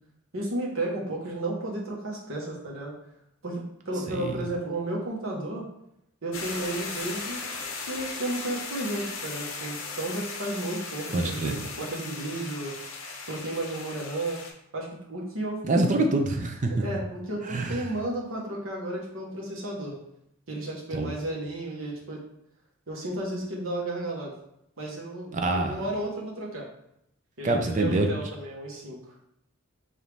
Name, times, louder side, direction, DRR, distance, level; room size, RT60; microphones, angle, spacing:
voice 1, 0.3-2.9 3.4-5.7 6.2-7.4 7.8-12.7 13.3-14.4 14.7-15.6 16.7-20.0 20.5-22.2 22.9-24.3 24.8-26.7 27.4-29.0, right 1 dB, 70° right, -2 dB, 1.2 m, -33 dB
voice 2, 4.1-4.4 11.1-11.6 15.7-16.7 17.5-17.7 20.9-21.1 25.3-25.8 27.4-28.1, right 2 dB, 35° right, 4 dB, 0.5 m, -25 dB
sound 1, 6.3-14.5, left 4 dB, 65° left, 0.8 m, -37 dB
5.0 x 2.7 x 3.3 m, 0.77 s
head